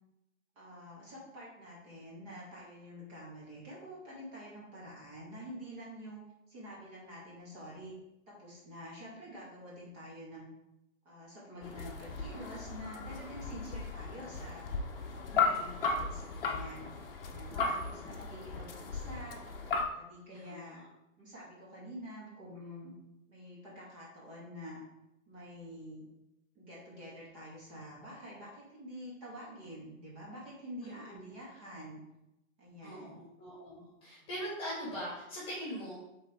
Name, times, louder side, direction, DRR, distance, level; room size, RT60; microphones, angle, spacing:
voice 1, 0.6-8.0 8.3-10.5 11.0-14.6 15.1-16.8 17.2-19.4 19.9-20.8 21.2-22.9 23.3-24.8 25.3-26.1 26.5-32.0 32.6-33.2 34.2-34.3, equal, 25° right, -6 dB, 2.2 m, -47 dB
sound 1, 11.6-19.8, left 4 dB, 45° left, 0.9 m, -36 dB
voice 2, 17.7-18.1 20.3-20.9 30.8-31.4 32.8-36.0, equal, 15° left, -7 dB, 2.2 m, -42 dB
8.0 x 3.9 x 3.7 m, 0.89 s
hypercardioid pair, 155°, 41 cm